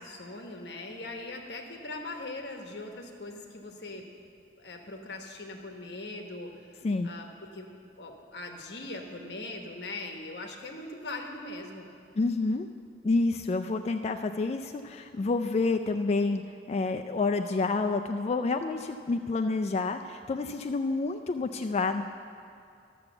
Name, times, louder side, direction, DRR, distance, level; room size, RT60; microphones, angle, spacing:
voice 1, 0.0-4.0 4.6-6.7 7.0-11.9, left 2 dB, 65° left, 3 dB, 1.2 m, -41 dB
voice 2, 12.2-12.7 13.0-16.4 16.7-22.0, left 3 dB, 35° left, 5 dB, 0.3 m, -28 dB
13.0 x 6.8 x 7.0 m, 2.4 s
head